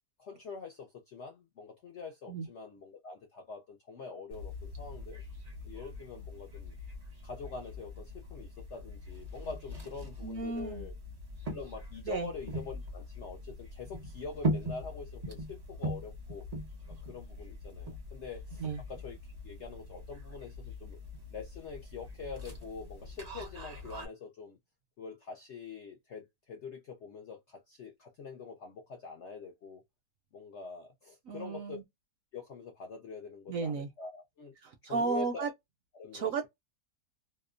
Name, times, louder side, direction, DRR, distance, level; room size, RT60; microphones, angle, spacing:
voice 1, 0.2-5.2 5.6-6.8 7.2-10.9 11.5-16.5 17.0-21.0 21.3-24.6 25.0-29.8 30.3-31.8 32.3-34.5 34.8-35.4 35.9-36.5, left 5 dB, 65° left, 0.7 m, -45 dB
sound 1, 4.3-24.1, equal, 35° right, 0.6 m, -41 dB
voice 2, 10.2-10.9 12.1-12.3 18.6-18.8 31.3-31.8 33.5-33.9 34.6-35.5 36.1-36.5, right 4 dB, 65° right, 0.8 m, -34 dB
2.8 x 2.1 x 2.4 m
omnidirectional pair, 1.8 m